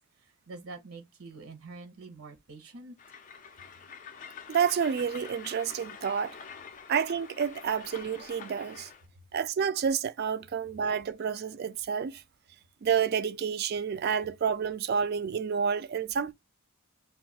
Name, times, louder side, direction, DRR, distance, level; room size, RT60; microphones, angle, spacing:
voice 1, 0.5-2.9, right 3 dB, 80° right, 0.8 m, -45 dB
Train, 3.0-9.1, left 6 dB, 35° left, 0.3 m, -46 dB
voice 2, 4.5-6.3 6.9-8.9 9.3-12.2 12.8-16.3, right 7 dB, 45° right, 0.3 m, -29 dB
2.6 x 2.3 x 4.0 m
head